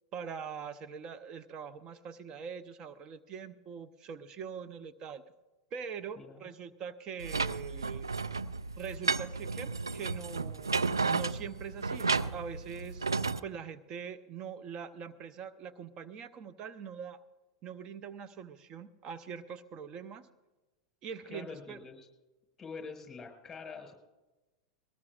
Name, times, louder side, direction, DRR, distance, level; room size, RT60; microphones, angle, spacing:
voice 1, 0.1-5.2 5.7-8.1 8.8-13.1 13.4-17.2 17.6-20.3 21.0-21.8, right 7 dB, 40° right, 13 dB, 0.8 m, -43 dB
voice 2, 6.2-6.5 21.3-22.1 22.6-24.0, left 5 dB, 15° left, 4 dB, 5.5 m, -45 dB
sound 1, 7.2-13.4, right 4 dB, 90° right, 0.4 m, -33 dB
21.5 x 19.5 x 2.5 m, 1.1 s
figure-of-eight pair, 90°, 2 cm